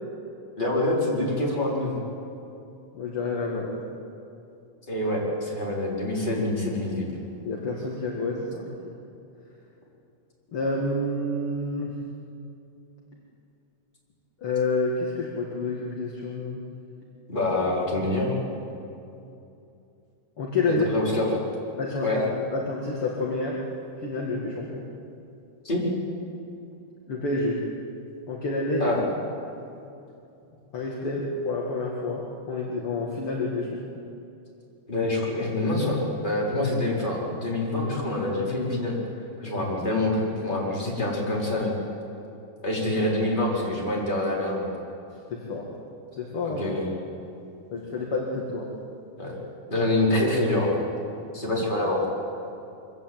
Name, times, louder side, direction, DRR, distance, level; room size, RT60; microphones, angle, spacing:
voice 1, 0.6-2.0 4.9-7.1 17.3-18.4 20.7-21.4 22.0-22.2 25.6-25.8 28.8-29.0 34.9-36.0 36.2-39.0 39.4-41.7 42.6-44.7 46.4-46.9 49.2-49.4 49.7-50.7 51.3-52.1, left 1 dB, 15° left, -4 dB, 4.4 m, -26 dB
voice 2, 2.9-3.8 7.4-8.8 10.5-12.0 14.4-16.6 20.4-20.9 21.8-23.6 24.0-24.9 27.1-27.6 28.3-28.9 30.7-34.0 45.3-45.8 46.1-46.6 47.7-48.7, left 2 dB, 45° left, -2 dB, 2.6 m, -29 dB
23.5 x 16.0 x 9.0 m, 2.7 s
omnidirectional pair, 3.6 m